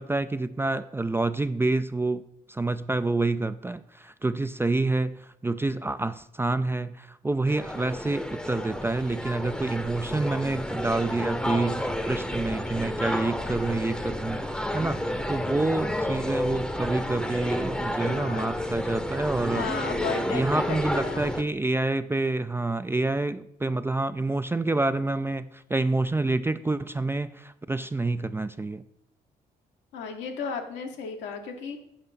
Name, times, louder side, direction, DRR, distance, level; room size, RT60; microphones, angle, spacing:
voice 1, 0.0-2.2 2.5-19.7 20.3-28.8, right 2 dB, 10° right, 12 dB, 0.3 m, -28 dB
sound 1, 7.5-21.4, left 1 dB, 5° left, 0.7 m, -31 dB
voice 2, 18.0-18.5 19.5-21.4 29.9-31.8, left 5 dB, 75° left, 4 dB, 1.0 m, -34 dB
7.3 x 5.3 x 4.0 m, 0.77 s
hypercardioid pair, 50°, 19 cm